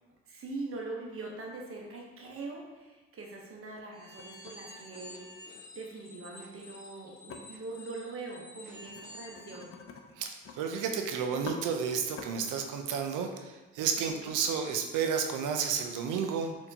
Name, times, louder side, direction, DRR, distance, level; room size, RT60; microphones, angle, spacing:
voice 1, 0.3-9.7 14.0-14.4, right 3 dB, 45° right, -1 dB, 0.9 m, -42 dB
sound 1, 2.7-2.8 3.5-3.8 4.1-5.6 7.3-7.4 8.8-9.0 9.3-10.6 10.9-11.0 11.3-11.6 12.0-12.3, left 5 dB, 50° left, 0.5 m, -47 dB
sound 2, 3.9-9.7, left 1 dB, 35° left, 1.3 m, -50 dB
voice 2, 10.2-16.6, right 6 dB, 85° right, 4 dB, 0.5 m, -31 dB
4.3 x 2.9 x 2.7 m, 1.2 s
cardioid pair, 90°, 30 cm